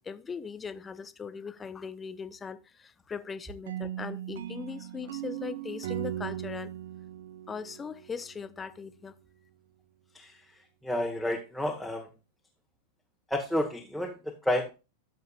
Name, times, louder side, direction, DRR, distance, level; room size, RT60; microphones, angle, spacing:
voice 1, 0.0-6.7 7.5-9.1, left 6 dB, 15° left, 0.7 m, -40 dB
sound 1, 3.7-8.5, right 12 dB, 60° right, 0.6 m, -38 dB
voice 2, 10.1-12.1 13.3-14.7, left 1 dB, ahead, 1.3 m, -31 dB
13.5 x 6.9 x 2.4 m
figure-of-eight pair, 90°, 0 cm